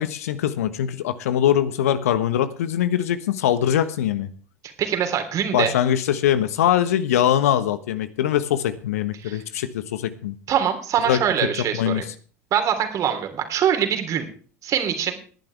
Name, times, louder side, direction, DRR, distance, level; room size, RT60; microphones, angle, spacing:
voice 1, 0.0-4.3 5.5-10.3 11.1-12.0, left 10 dB, 70° left, 12 dB, 1.3 m, -22 dB
voice 2, 4.8-5.7 9.2-9.4 10.5-12.0 12.5-14.2 14.6-15.1, right 9 dB, 40° right, 6 dB, 3.4 m, -23 dB
19.5 x 11.0 x 3.5 m, 0.42 s
figure-of-eight pair, 75°, 8 cm